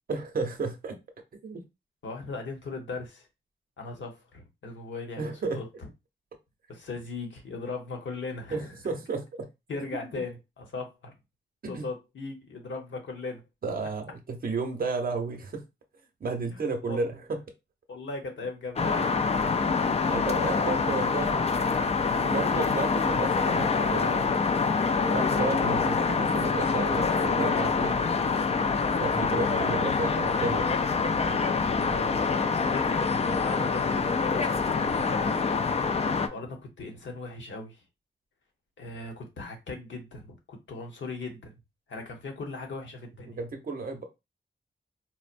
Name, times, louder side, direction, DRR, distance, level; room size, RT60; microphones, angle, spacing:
voice 1, 0.1-1.0 1.4-1.6 5.2-5.6 8.5-9.2 11.6-11.8 13.6-15.6 16.2-17.4 19.8-21.7 22.1-24.4 25.0-28.0 29.0-30.7 43.4-44.0, right 4 dB, 50° right, 0.7 m, -32 dB
voice 2, 2.0-3.3 3.8-5.9 6.7-8.8 9.7-11.2 11.7-13.4 16.5-17.1 17.9-19.2 31.8-35.4 36.3-37.8 38.8-41.5 41.9-43.4, left 3 dB, 70° left, 1.0 m, -38 dB
sound 1, 18.8-36.3, left 4 dB, 35° left, 0.3 m, -26 dB
4.3 x 2.0 x 2.5 m
wide cardioid pair, 120°, 20 cm